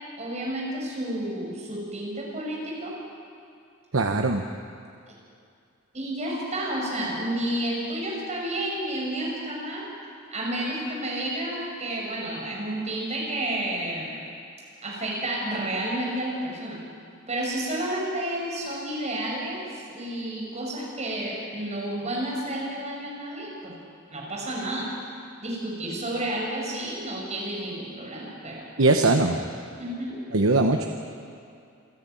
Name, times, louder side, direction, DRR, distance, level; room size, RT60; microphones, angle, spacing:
voice 1, 0.2-2.9 5.9-9.9 10.3-14.1 14.8-16.8 17.3-23.7 24.1-24.9 25.4-28.6 29.8-30.1, right 1 dB, 35° right, -3 dB, 5.9 m, -31 dB
voice 2, 3.9-4.4 28.8-29.4 30.3-30.9, right 2 dB, 85° right, 4 dB, 1.0 m, -20 dB
27.5 x 11.0 x 9.1 m, 2.5 s
head